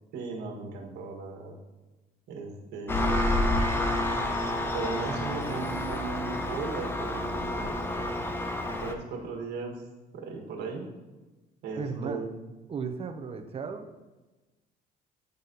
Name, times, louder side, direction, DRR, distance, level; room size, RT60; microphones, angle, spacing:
voice 1, 0.1-1.6 2.3-3.5 4.7-7.8 8.8-9.8 10.1-10.8 11.6-12.3, right 4 dB, 80° right, 0 dB, 1.5 m, -37 dB
Engine, 2.9-8.9, left 1 dB, 15° left, 0.7 m, -29 dB
voice 2, 11.8-12.2 12.7-14.1, right 5 dB, 35° right, 6 dB, 0.7 m, -35 dB
9.3 x 4.1 x 3.9 m, 1.1 s
cardioid pair, 110°, 17 cm